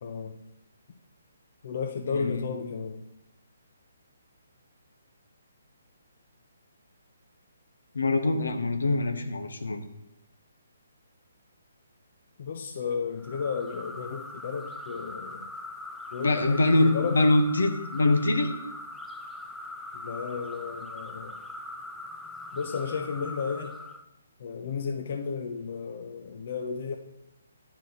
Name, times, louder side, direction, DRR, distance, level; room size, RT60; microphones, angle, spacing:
voice 1, 0.0-0.4 1.6-3.0 8.8-9.0 12.4-15.5 16.1-17.2 19.9-21.4 22.5-23.8 24.4-26.9, left 5 dB, 55° left, 3 dB, 0.6 m, -33 dB
voice 2, 2.1-2.5 7.9-9.8 16.2-18.5, left 2 dB, 80° left, 6 dB, 1.1 m, -24 dB
sound 1, 13.2-24.1, left 2 dB, 5° left, 0.4 m, -41 dB
10.5 x 4.5 x 3.9 m, 0.86 s
hypercardioid pair, 145°, 0 cm